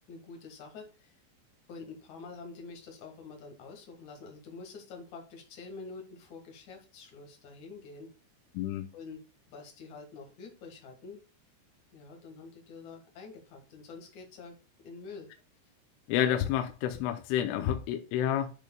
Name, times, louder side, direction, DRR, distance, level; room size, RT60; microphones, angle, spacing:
voice 1, 0.1-1.2 1.7-8.1 8.9-9.2 9.5-11.2 11.9-14.6 14.8-15.3, left 4 dB, 60° left, 2.0 m, -47 dB
voice 2, 8.5-8.8 16.1-18.5, left 10 dB, 85° left, 3.2 m, -29 dB
10.5 x 6.6 x 2.2 m
omnidirectional pair, 5.7 m